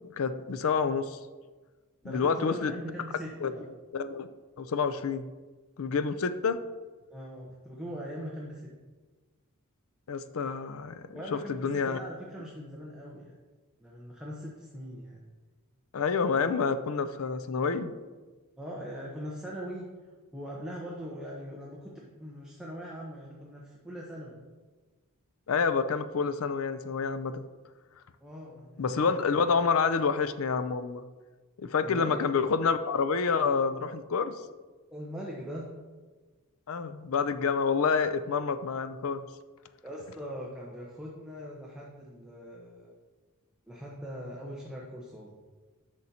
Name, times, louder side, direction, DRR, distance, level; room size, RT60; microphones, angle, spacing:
voice 1, 0.1-1.2 2.0-2.7 3.4-3.5 3.9-4.3 4.6-5.3 5.8-6.6 10.1-11.0 11.3-12.0 15.9-17.9 25.5-27.5 28.8-31.0 31.6-34.3 36.7-39.2, left 5 dB, 65° left, 12 dB, 0.5 m, -28 dB
voice 2, 2.0-3.6 7.1-8.7 11.1-13.4 13.8-15.2 18.6-19.9 20.3-24.4 28.2-29.0 31.8-32.2 34.9-35.7 39.8-42.9 43.7-45.3, equal, 5° right, -5 dB, 0.9 m, -41 dB
10.5 x 6.1 x 2.8 m, 1.3 s
head